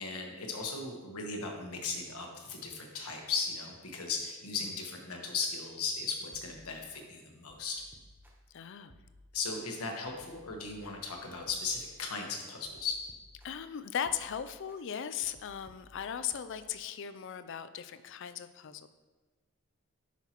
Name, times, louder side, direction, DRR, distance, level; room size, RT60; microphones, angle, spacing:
voice 1, 0.0-7.8 9.3-12.9, left 4 dB, 80° left, 2 dB, 1.3 m, -37 dB
sound 1, 6.3-7.0 7.5-8.6 8.9-9.6 10.1-12.2 12.6-13.7 14.1-14.8 15.2-16.6, equal, 10° right, 0.7 m, -59 dB
voice 2, 8.5-9.0 13.4-18.9, left 8 dB, 55° left, 12 dB, 0.4 m, -38 dB
9.9 x 5.8 x 3.0 m, 1.3 s
head